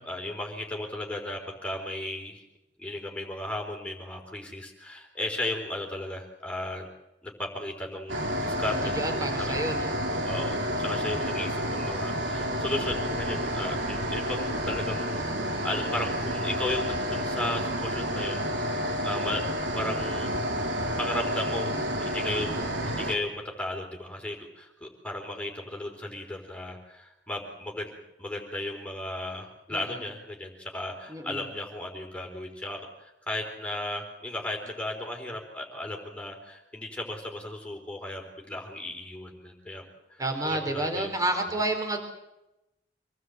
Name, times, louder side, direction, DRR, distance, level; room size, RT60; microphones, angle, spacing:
voice 1, 0.0-2.4 2.8-6.9 7.2-9.6 10.2-18.5 19.0-19.4 19.8-20.3 21.0-21.7 22.0-22.6 22.8-39.8 40.1-41.2, left 1 dB, 5° left, 1 dB, 4.0 m, -35 dB
sound 1, 8.1-23.2, equal, 70° right, 3.7 m, -30 dB
voice 2, 8.9-10.0 21.7-22.0 29.7-30.0 31.1-31.4 40.2-42.0, right 2 dB, 20° right, 4 dB, 4.3 m, -30 dB
26.5 x 19.0 x 8.1 m, 0.93 s
head